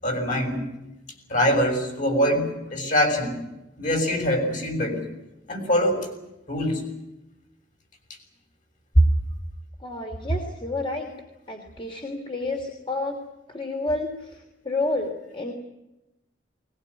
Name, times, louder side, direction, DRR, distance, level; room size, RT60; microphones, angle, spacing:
voice 1, 0.0-0.7 1.3-3.4 3.8-5.0 5.5-6.1 6.5-6.8 9.0-9.1, equal, 45° left, 5 dB, 6.6 m, -23 dB
voice 2, 9.8-11.1 11.5-13.2 13.5-15.5, left 2 dB, 30° left, 2 dB, 3.0 m, -30 dB
21.0 x 20.5 x 9.7 m, 0.95 s
head